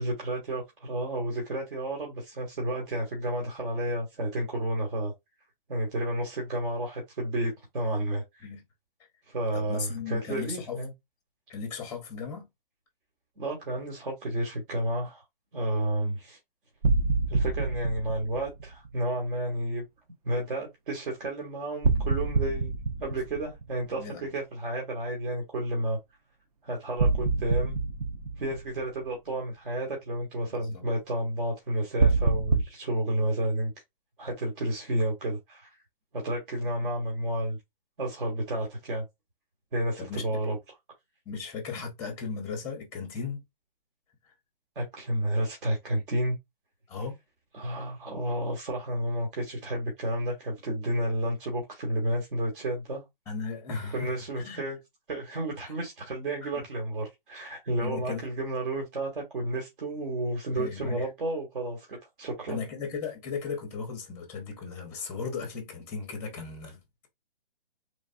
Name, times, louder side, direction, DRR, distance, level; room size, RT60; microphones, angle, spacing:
voice 1, 0.0-5.1 5.7-8.5 9.3-10.9 13.4-15.2 15.5-16.4 17.3-19.8 20.2-22.7 23.0-26.0 26.6-27.7 28.4-33.7 34.2-35.7 36.1-37.6 38.0-39.0 39.7-40.6 44.7-46.4 47.5-53.0 53.9-54.8 55.1-62.6, right 1 dB, 60° right, 1.2 m, -31 dB
voice 2, 9.5-10.8 11.5-12.4 24.0-24.3 30.5-30.8 40.0-40.2 41.3-43.4 46.9-47.1 53.3-54.1 54.4-54.6 56.4-56.5 57.8-58.2 60.5-61.0 62.5-66.8, left 5 dB, 10° left, 0.6 m, -36 dB
sound 1, 16.8-18.9 21.8-24.1 27.0-29.0 32.0-32.6, right 3 dB, 40° right, 0.4 m, -26 dB
3.3 x 2.0 x 2.5 m
hypercardioid pair, 150°, 29 cm